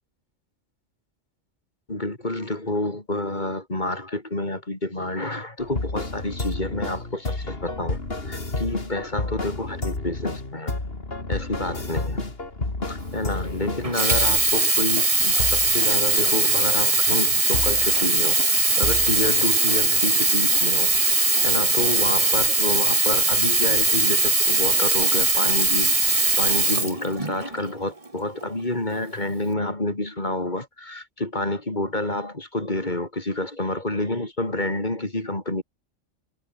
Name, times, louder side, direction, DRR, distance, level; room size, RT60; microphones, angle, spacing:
voice 1, 1.9-10.7 11.3-12.2 12.9-20.9 21.4-26.0 26.4-35.6, left 1 dB, 40° left, 4.2 m, -29 dB
sound 1, 5.6-14.6 15.0-15.1 15.4-15.9 16.3-16.4 16.7-16.8 17.1-17.2 17.5-18.1 18.4-18.5 18.8-19.4 19.7-19.8 20.1-20.2, left 2 dB, 55° left, 3.7 m, -31 dB
Sink (filling or washing), 13.8-27.6 28.4-28.5, right 3 dB, 30° right, 1.9 m, -20 dB
omnidirectional pair, 1.2 m